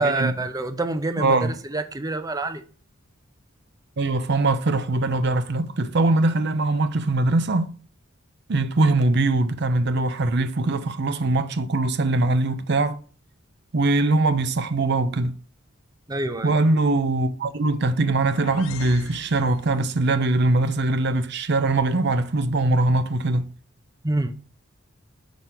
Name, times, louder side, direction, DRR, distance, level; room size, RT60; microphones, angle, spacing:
voice 1, 0.0-2.6 16.1-16.6 24.0-24.3, right 2 dB, 20° right, 0.6 m, -26 dB
voice 2, 1.2-1.5 4.0-7.7 8.5-13.0 13.7-15.4 16.4-23.5, right 2 dB, 55° right, 0.6 m, -22 dB
sound 1, 17.8-20.1, left 7 dB, 85° left, 0.5 m, -41 dB
5.2 x 4.4 x 5.9 m
head